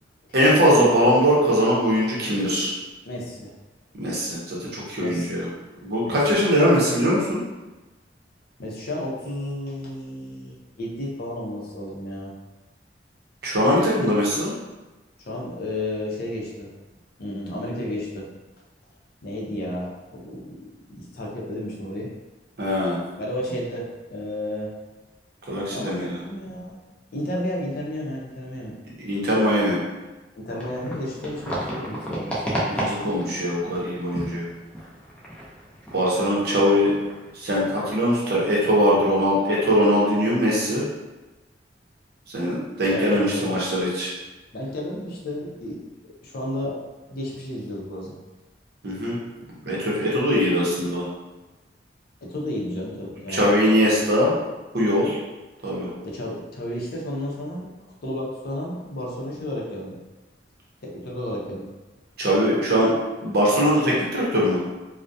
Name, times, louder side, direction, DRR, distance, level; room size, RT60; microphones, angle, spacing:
voice 1, 0.3-2.7 4.0-5.5 5.8-7.4 13.4-14.5 22.6-23.0 25.5-26.2 29.0-29.8 32.6-34.4 35.9-36.9 37.3-40.8 42.3-44.1 48.8-49.2 49.7-51.1 53.3-54.3 54.7-55.2 55.6-55.9 62.2-62.9 63.2-64.6, equal, 60° right, -5 dB, 0.7 m, -21 dB
voice 2, 3.0-3.5 5.0-5.3 6.0-6.2 8.6-12.3 15.2-16.7 17.2-18.3 19.2-20.6 20.9-22.1 23.2-24.7 25.7-26.8 27.1-28.7 30.4-32.9 33.7-33.9 34.1-34.3 42.9-43.7 44.5-45.8 46.2-46.8 47.1-48.1 52.2-53.5 53.8-54.0 56.0-57.7 58.0-60.0 60.8-61.7, left 1 dB, 60° left, -3 dB, 0.5 m, -32 dB
sound 1, 30.5-37.3, equal, 5° left, 0.4 m, -33 dB
2.2 x 2.1 x 2.6 m, 1.1 s
head